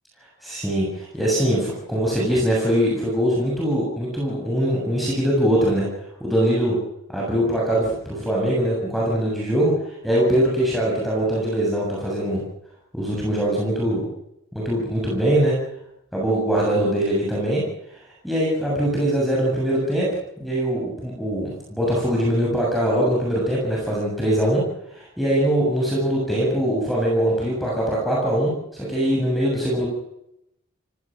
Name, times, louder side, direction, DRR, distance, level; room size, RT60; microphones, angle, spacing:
voice 1, 0.4-5.9 6.2-6.8 7.1-12.4 12.9-14.0 14.5-15.5 16.1-17.6 18.2-20.1 20.4-24.6 24.9-29.9, right 1 dB, ahead, -4 dB, 7.3 m, -22 dB
27.0 x 18.0 x 6.4 m, 0.82 s
head